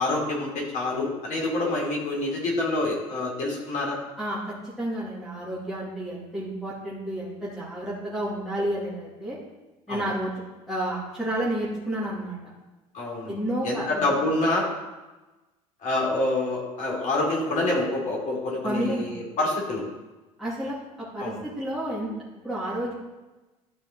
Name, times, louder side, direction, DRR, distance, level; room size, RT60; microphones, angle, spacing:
voice 1, 0.0-4.0 9.9-10.0 12.9-13.4 13.6-14.7 15.8-19.8 21.2-21.4, left 2 dB, 45° left, -2 dB, 3.3 m, -27 dB
voice 2, 4.2-9.4 9.9-10.3 10.7-12.4 13.3-14.1 18.6-19.1 20.4-22.1 22.4-22.9, right 1 dB, ahead, -10 dB, 2.8 m, -30 dB
12.0 x 5.1 x 3.9 m, 1.1 s
figure-of-eight pair, 65°, 18 cm